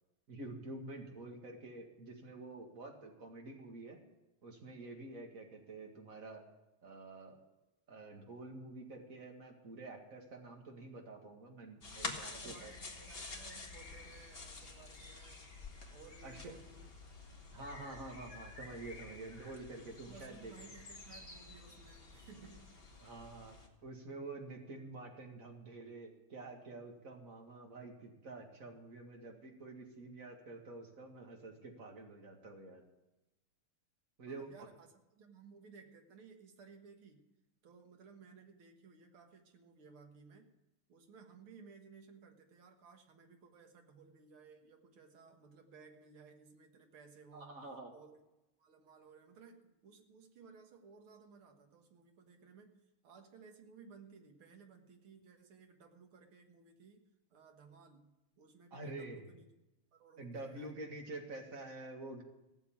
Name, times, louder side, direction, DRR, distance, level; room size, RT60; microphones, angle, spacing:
voice 1, 0.3-4.0 4.4-6.4 6.8-7.3 7.9-12.7 16.2-16.5 17.5-20.5 23.0-23.6 23.8-32.8 34.2-34.5 47.3-47.9 58.7-59.3 60.2-62.2, right 2 dB, 40° right, 2 dB, 2.3 m, -48 dB
sound 1, 11.8-23.7, left 3 dB, 30° left, 1.8 m, -49 dB
voice 2, 12.1-15.4 15.9-16.9 17.7-18.0 19.8-23.0 34.3-37.3 37.6-40.5 40.9-48.2 48.6-59.5 59.9-60.8, right 5 dB, 75° right, 4 dB, 2.3 m, -59 dB
16.0 x 7.1 x 8.7 m, 0.98 s
omnidirectional pair, 2.4 m